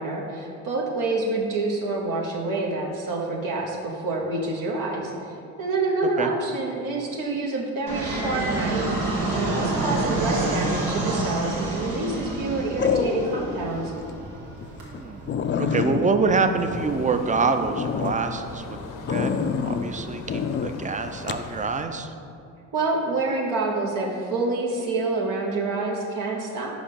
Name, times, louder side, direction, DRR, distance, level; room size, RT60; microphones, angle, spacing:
voice 1, 0.0-13.9 22.7-26.7, right 3 dB, 65° right, -2 dB, 1.0 m, -27 dB
Fixed-wing aircraft airplane, 7.9-16.9, right 2 dB, 80° right, 1.4 m, -29 dB
sound 1, 11.2-11.6 12.8-13.6 14.0-14.1 14.6-14.7 14.9-15.0 15.3-17.3 17.7-18.2 19.1-19.9 20.3-20.7 21.3-21.5, left 6 dB, 30° left, 0.4 m, -26 dB
voice 2, 14.8-15.3 15.6-18.8 19.1-19.3 19.6-22.1, right 4 dB, 20° right, 8 dB, 0.5 m, -26 dB
sound 2, 16.7-21.9, left 4 dB, 60° left, 0.7 m, -40 dB
5.1 x 5.0 x 5.3 m, 2.5 s
supercardioid pair, 60°, 36 cm